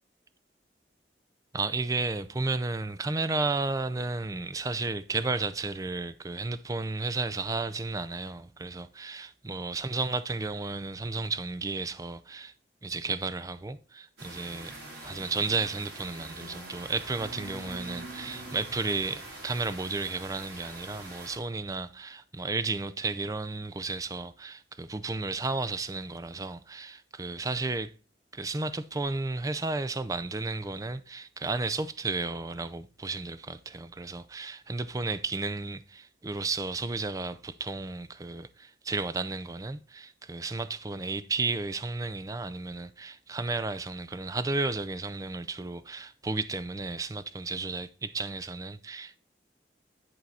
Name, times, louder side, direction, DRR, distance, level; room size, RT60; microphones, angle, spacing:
voice 1, 1.5-12.5 12.8-27.9 28.3-49.2, right 3 dB, 20° right, 0.4 m, -33 dB
sound 1, 14.2-21.4, right 2 dB, 70° right, 3.4 m, -43 dB
10.5 x 4.6 x 4.2 m
head